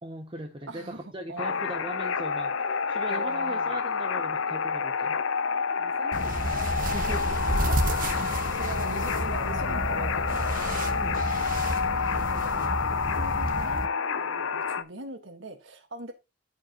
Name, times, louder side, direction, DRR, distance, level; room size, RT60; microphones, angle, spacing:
voice 1, 0.0-5.2 6.9-7.6 10.9-11.2, right 1 dB, 25° right, 0.8 m, -39 dB
voice 2, 0.7-1.6 3.1-3.8 5.8-6.7 7.2-7.3 7.7-10.6 11.0-11.7 12.1-16.1, right 2 dB, 65° right, 1.6 m, -42 dB
sound 1, 1.4-14.8, left 5 dB, 70° left, 0.6 m, -29 dB
sound 2, 6.1-13.9, right 1 dB, 40° right, 1.1 m, -31 dB
14.0 x 4.9 x 2.9 m
head